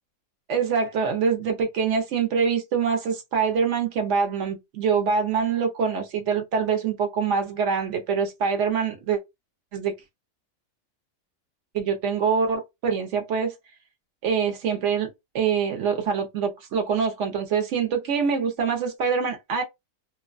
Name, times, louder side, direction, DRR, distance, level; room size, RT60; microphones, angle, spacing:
voice 1, 0.5-9.2 9.7-9.9 11.7-13.5 14.2-15.1 15.3-19.6, right 6 dB, 65° right, 1.0 m, -24 dB
2.6 x 2.2 x 2.4 m
omnidirectional pair, 1.4 m